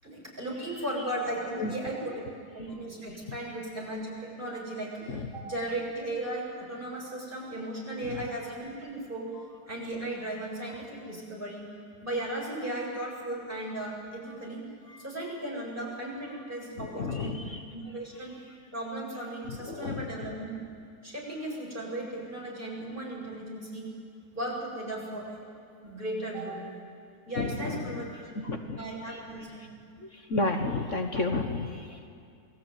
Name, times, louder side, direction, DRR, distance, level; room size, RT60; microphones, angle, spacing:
voice 1, 0.0-2.2 2.5-9.3 9.7-11.6 12.0-14.6 15.0-17.3 17.7-18.4 18.7-20.6 21.0-23.9 24.3-25.4 25.8-26.6 27.3-29.7 31.1-31.2, right 1 dB, 30° right, -3 dB, 7.6 m, -36 dB
voice 2, 16.8-17.6 19.6-20.3 27.4-29.2 29.6-29.7 30.0-32.1, left 3 dB, 50° left, 4 dB, 1.6 m, -33 dB
28.0 x 20.5 x 9.2 m, 2.3 s
omnidirectional pair, 1.7 m